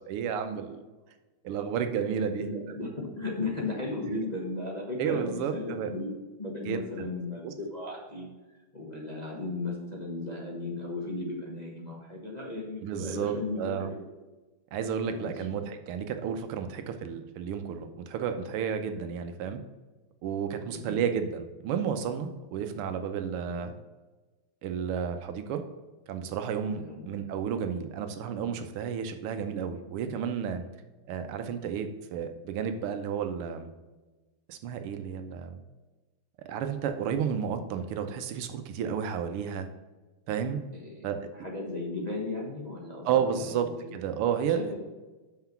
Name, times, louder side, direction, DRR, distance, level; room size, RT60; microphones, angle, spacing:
voice 1, 0.1-0.8 1.4-2.5 5.0-5.9 6.6-6.8 7.4-7.5 12.8-13.9 14.7-19.6 20.2-23.7 24.6-25.6 26.1-30.6 31.1-33.7 34.5-35.6 36.4-39.7 40.3-40.6 41.0-41.3 43.0-44.6, right 7 dB, 85° right, 8 dB, 1.7 m, -32 dB
voice 2, 2.3-6.1 6.4-8.3 8.7-14.0 15.1-15.3 20.7-21.0 23.5-23.6 26.8-27.0 40.7-41.0 41.3-43.9 44.6-44.8, left 2 dB, 25° left, -3 dB, 1.0 m, -36 dB
5.8 x 5.7 x 5.8 m, 1.2 s
omnidirectional pair, 2.4 m